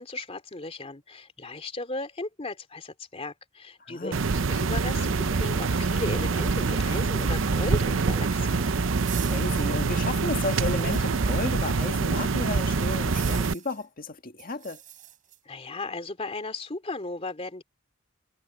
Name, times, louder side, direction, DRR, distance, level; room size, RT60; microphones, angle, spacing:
voice 1, 0.0-8.6 15.5-17.6, left 2 dB, 30° left, 2.7 m, -36 dB
voice 2, 3.8-4.2 9.2-14.8, left 3 dB, 45° left, 1.9 m, -33 dB
sound 1, 4.1-13.5, right 4 dB, 80° right, 0.7 m, -25 dB
sound 2, 6.2-11.9 12.2-12.3 12.9-13.8 14.4-15.4, right 8 dB, 45° right, 4.9 m, -44 dB
head